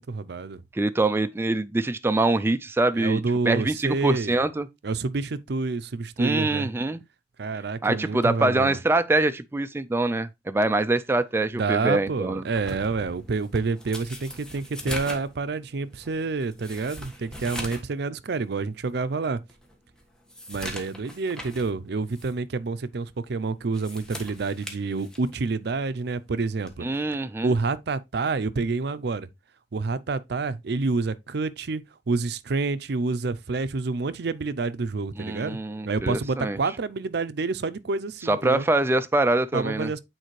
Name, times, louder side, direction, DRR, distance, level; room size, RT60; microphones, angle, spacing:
voice 1, 0.0-0.6 2.9-4.4 4.8-6.7 7.4-8.8 11.5-19.4 20.5-26.9 27.4-29.3 29.7-35.6 35.9-38.7 39.5-40.0, right 3 dB, 65° right, 0.5 m, -28 dB
voice 2, 0.7-4.7 6.2-7.0 7.8-12.4 26.8-27.5 35.2-36.6 38.3-39.9, right 2 dB, 15° right, 0.4 m, -24 dB
sound 1, 12.5-17.9 18.3-18.4 19.0-19.1 19.5-21.7 22.1-22.3 23.6-25.5 26.6-26.8, equal, 5° left, 1.4 m, -40 dB
9.0 x 4.2 x 3.1 m
head